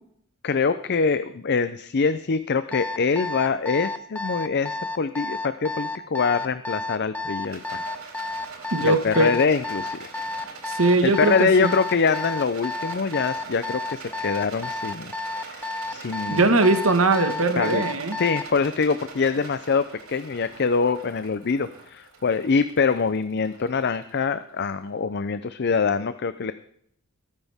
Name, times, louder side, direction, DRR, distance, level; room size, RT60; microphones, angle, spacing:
voice 1, 0.4-7.8 8.8-10.1 11.0-15.6 15.9-16.5 17.6-17.9 18.2-26.5, left 5 dB, 50° left, 12 dB, 0.5 m, -24 dB
Alarm, 2.7-18.5, left 2 dB, 5° left, 0.8 m, -31 dB
Rattle, 7.4-24.8, right 4 dB, 90° right, 4.3 m, -43 dB
voice 2, 8.7-9.3 10.6-11.7 16.3-18.2, right 2 dB, 65° right, 7 dB, 1.6 m, -20 dB
20.0 x 9.7 x 3.6 m, 0.68 s
head